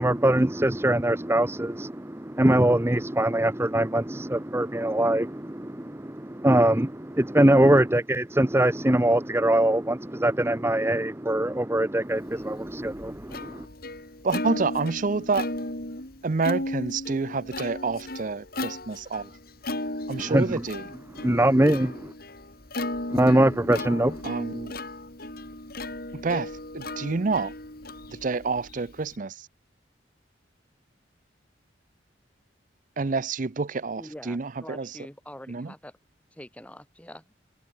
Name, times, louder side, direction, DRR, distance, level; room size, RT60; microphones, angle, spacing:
voice 1, 0.0-13.6 20.3-20.6 21.2-22.1 23.1-24.2, right 1 dB, 15° right, 0.9 m, -22 dB
Plucked string instrument, 12.4-29.2, left 1 dB, 50° left, 5.1 m, -36 dB
voice 2, 14.2-15.5 16.2-19.3 20.1-20.9 24.2-24.7 26.1-27.5 28.1-29.5 33.0-35.0 35.5-35.7, right 4 dB, 45° right, 0.5 m, -28 dB
voice 3, 34.0-35.9 36.3-37.2, left 1 dB, 5° left, 3.3 m, -45 dB
head